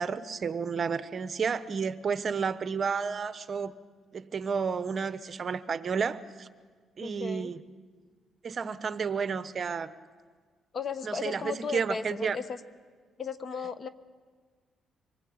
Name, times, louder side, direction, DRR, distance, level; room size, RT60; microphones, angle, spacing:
voice 1, 0.0-3.7 4.1-6.5 7.0-7.6 8.4-9.9 11.0-12.4, right 6 dB, 45° right, 12 dB, 1.0 m, -31 dB
voice 2, 7.0-7.5 10.7-12.6 13.2-13.9, left 5 dB, 45° left, 12 dB, 1.2 m, -35 dB
24.5 x 19.0 x 8.7 m, 1.5 s
cardioid pair, 90°, 0 cm